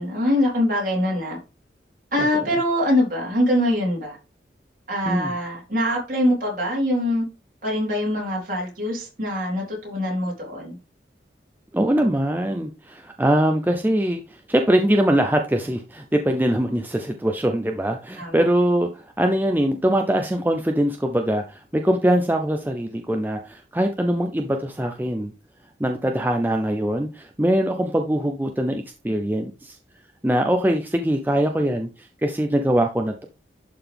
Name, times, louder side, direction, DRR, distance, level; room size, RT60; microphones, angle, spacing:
voice 1, 0.0-1.4 2.1-4.2 4.9-7.3 7.6-10.8 18.2-18.4, left 1 dB, 45° right, -2 dB, 3.9 m, -23 dB
voice 2, 11.7-25.3 25.8-29.8 30.2-33.3, right 1 dB, 10° right, 4 dB, 0.5 m, -22 dB
11.0 x 3.9 x 3.5 m, 0.31 s
head